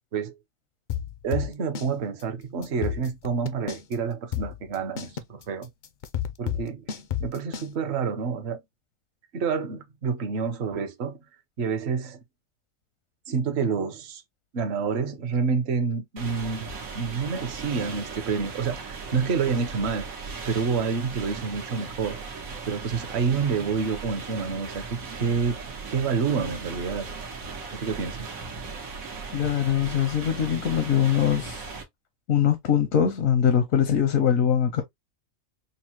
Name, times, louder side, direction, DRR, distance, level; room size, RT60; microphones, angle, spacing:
sound 1, 0.9-1.9 2.2-2.3 2.6-3.9 4.3-7.7, left 9 dB, 60° left, 0.5 m, -30 dB
voice 1, 1.2-5.7 6.4-8.6 9.3-11.2 11.6-12.2 13.3-14.2 14.5-20.1 20.5-25.6 25.9-27.1 27.7-28.3, right 5 dB, 55° right, 0.9 m, -28 dB
sound 2, 16.2-31.8, right 4 dB, 90° right, 1.4 m, -38 dB
voice 2, 29.3-31.7 32.3-34.8, left 9 dB, 80° left, 1.2 m, -22 dB
5.3 x 2.0 x 2.8 m
omnidirectional pair, 1.4 m